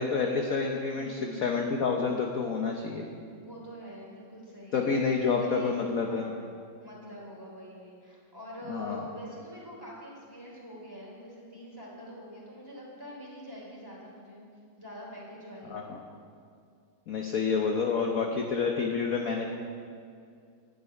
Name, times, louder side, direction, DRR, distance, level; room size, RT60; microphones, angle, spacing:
voice 1, 0.0-3.0 4.7-6.3 8.7-9.0 15.7-16.0 17.1-19.5, left 5 dB, 55° left, 1 dB, 1.2 m, -28 dB
voice 2, 1.0-1.5 3.3-4.8 5.2-6.5 6.8-14.4 14.8-15.8 17.7-18.1, equal, 10° right, -4 dB, 3.6 m, -45 dB
11.0 x 8.1 x 9.8 m, 2.3 s
omnidirectional pair, 2.2 m